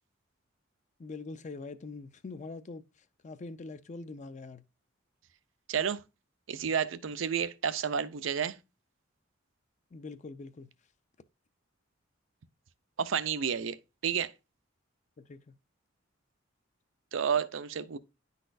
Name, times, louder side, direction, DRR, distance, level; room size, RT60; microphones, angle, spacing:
voice 1, 1.0-2.8 3.2-4.6 9.9-10.7 15.2-15.5, left 3 dB, 40° left, 0.4 m, -43 dB
voice 2, 5.7-6.0 6.5-8.6 13.0-14.3 17.1-18.0, right 7 dB, 70° right, 0.5 m, -31 dB
10.0 x 4.1 x 2.5 m
head